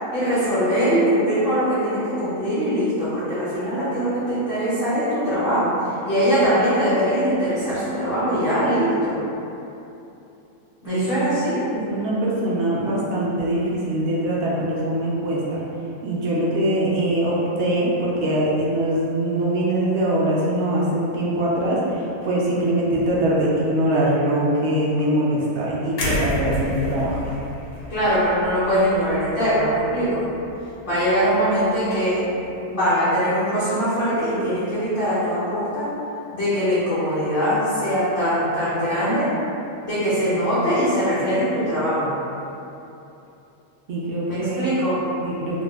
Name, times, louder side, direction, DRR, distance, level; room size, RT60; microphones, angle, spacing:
voice 1, 0.1-9.2 10.8-11.7 27.9-30.3 30.8-35.9 36.3-39.4 39.8-42.1 44.3-45.1, equal, 55° left, -11 dB, 0.6 m, -22 dB
voice 2, 11.7-15.6 16.0-27.3 43.9-44.6 45.2-45.6, right 1 dB, 65° right, -6 dB, 0.7 m, -22 dB
sound 1, 26.0-30.0 30.4-30.6, left 1 dB, 70° left, 1.0 m, -30 dB
2.6 x 2.1 x 3.2 m, 2.8 s
omnidirectional pair, 1.6 m